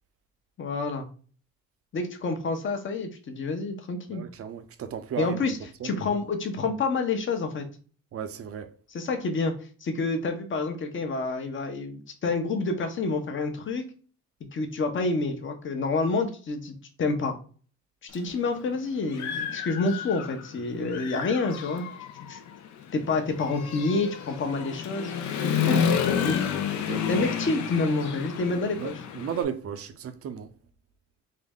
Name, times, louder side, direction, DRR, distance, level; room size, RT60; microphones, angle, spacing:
voice 1, 0.6-1.1 1.9-4.2 5.2-5.6 5.8-7.7 8.9-9.5 9.8-13.8 14.5-17.3 18.1-21.9 22.3-22.4 22.9-25.1 25.4-26.4 27.1-29.0, left 3 dB, 40° left, 0.8 m, -28 dB
voice 2, 4.1-5.4 5.8-6.0 8.1-8.7 25.6-25.9 26.7-27.1 28.8-30.5, right 8 dB, 50° right, 0.5 m, -34 dB
Human voice / Motorcycle, 18.1-18.2 18.7-20.5 20.8-29.4, left 8 dB, 70° left, 0.6 m, -30 dB
3.7 x 2.1 x 3.5 m
cardioid pair, 90°, 30 cm